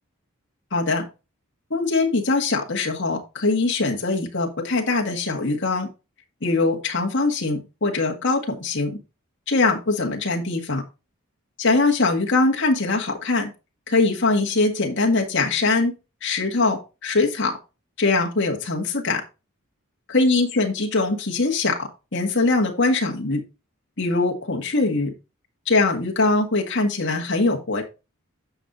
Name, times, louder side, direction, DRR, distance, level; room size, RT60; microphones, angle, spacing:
voice 1, 0.7-1.1 1.7-5.9 6.4-9.0 9.5-10.8 11.6-13.5 13.9-15.9 16.2-17.6 18.0-19.2 20.1-21.7 22.1-23.4 24.0-25.1 25.7-27.8, left 3 dB, 55° left, 1 dB, 1.9 m, -22 dB
9.9 x 6.4 x 2.7 m, 0.28 s
head